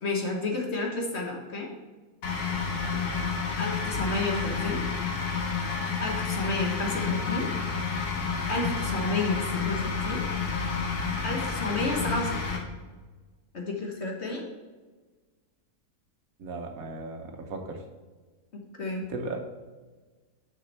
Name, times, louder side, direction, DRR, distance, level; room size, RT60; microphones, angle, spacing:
voice 1, 0.0-1.7 3.6-4.8 6.0-7.5 8.5-10.2 11.2-12.6 13.5-14.4 18.8-19.0, left 2 dB, 50° left, 0 dB, 1.3 m, -31 dB
sound 1, 2.2-12.6, left 5 dB, 85° left, 1.7 m, -30 dB
voice 2, 16.4-17.8 19.1-19.4, right 3 dB, 70° right, 4 dB, 1.3 m, -36 dB
6.4 x 6.1 x 4.1 m, 1.3 s
omnidirectional pair, 1.6 m